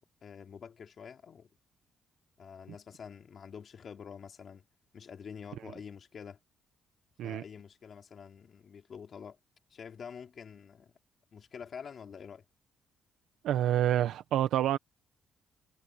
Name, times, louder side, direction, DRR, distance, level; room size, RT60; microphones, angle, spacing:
voice 1, 0.2-1.5 2.4-4.6 4.9-6.4 7.2-9.4 9.7-10.9 11.3-12.4, left 7 dB, 50° left, 3.1 m, -47 dB
voice 2, 13.4-14.8, right 12 dB, 80° right, 1.1 m, -27 dB
cardioid pair, 90°, 0 cm